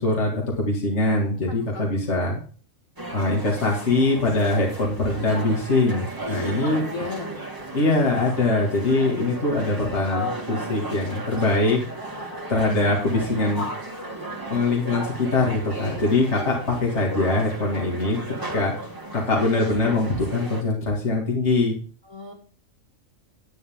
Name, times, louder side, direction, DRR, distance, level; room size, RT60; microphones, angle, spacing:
voice 1, 0.0-2.4 3.1-6.8 7.7-11.8 12.5-13.7 14.5-18.2 18.5-18.7 19.1-21.8, left 2 dB, 55° left, -2 dB, 2.5 m, -22 dB
voice 2, 1.7-2.0 6.6-7.3 9.1-9.2 15.7-16.4 22.0-22.3, left 3 dB, 80° left, -1 dB, 3.3 m, -36 dB
sound 1, 3.0-20.6, right 1 dB, 15° right, 1.8 m, -35 dB
10.5 x 9.5 x 3.6 m, 0.40 s
omnidirectional pair, 1.4 m